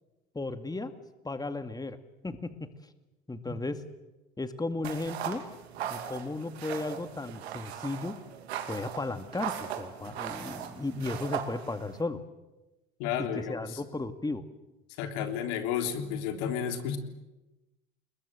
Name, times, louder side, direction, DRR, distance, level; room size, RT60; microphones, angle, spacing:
voice 1, 0.3-0.9 1.2-2.0 2.2-2.7 3.3-3.8 4.4-5.4 5.8-8.2 8.7-12.2 13.3-14.4, left 2 dB, 10° left, 9 dB, 2.2 m, -35 dB
sound 1, 4.8-12.0, right 9 dB, 85° right, 2.7 m, -39 dB
voice 2, 13.0-13.8 15.0-17.0, left 8 dB, 70° left, 6 dB, 3.5 m, -32 dB
29.5 x 21.0 x 7.8 m, 1.1 s
hypercardioid pair, 65°, 31 cm